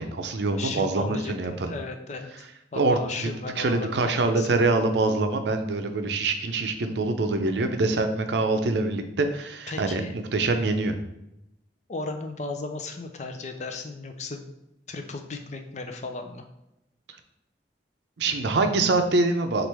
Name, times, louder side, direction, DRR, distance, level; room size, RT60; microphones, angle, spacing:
voice 1, 0.0-1.7 2.7-3.3 3.6-11.0 18.2-19.7, right 3 dB, 70° right, 7 dB, 0.5 m, -25 dB
voice 2, 0.6-4.6 9.7-10.1 11.9-14.5 14.9-16.4, left 3 dB, 40° left, 5 dB, 0.5 m, -36 dB
6.0 x 2.5 x 3.4 m, 0.86 s
head